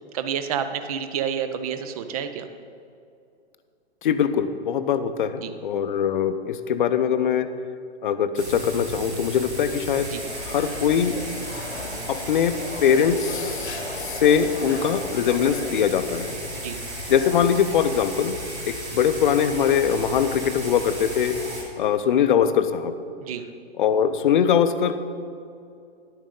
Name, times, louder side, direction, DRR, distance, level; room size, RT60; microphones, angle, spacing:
voice 1, 0.1-2.5 5.4-5.5 10.1-10.2 16.5-16.8 23.2-23.4, right 8 dB, 35° right, 9 dB, 0.6 m, -29 dB
voice 2, 4.0-7.5 8.0-10.1 10.5-11.2 12.1-16.4 17.1-18.4 18.7-21.3 21.8-22.9 23.8-25.0, left 8 dB, 50° left, 11 dB, 0.6 m, -22 dB
sound 1, 8.4-21.6, right 1 dB, 90° right, 2.2 m, -34 dB
sound 2, 10.1-15.7, left 3 dB, 80° left, 1.1 m, -38 dB
10.5 x 8.7 x 3.7 m, 2.4 s
figure-of-eight pair, 125°, 33 cm